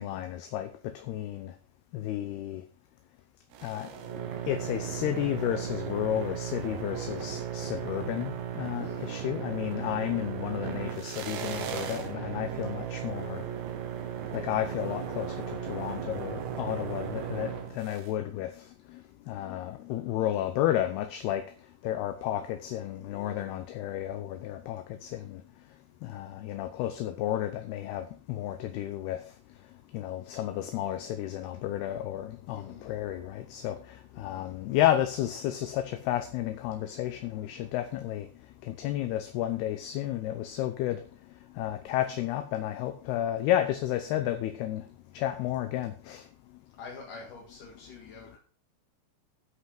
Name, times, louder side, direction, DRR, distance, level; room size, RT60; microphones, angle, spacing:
voice 1, 0.0-1.5 1.9-2.6 3.6-3.9 4.5-13.4 14.3-18.5 19.3-21.4 21.8-25.4 26.0-29.2 29.9-33.8 34.2-38.3 38.7-41.0 41.6-44.8 45.1-46.2, left 12 dB, 75° left, 8 dB, 2.6 m, -32 dB
sound 1, 3.5-18.1, right 8 dB, 85° right, 3.8 m, -36 dB
voice 2, 8.7-9.1 32.5-32.9 34.1-34.6 36.7-37.7 46.8-48.4, left 4 dB, 55° left, -2 dB, 3.1 m, -48 dB
13.0 x 5.7 x 6.0 m, 0.41 s
omnidirectional pair, 5.1 m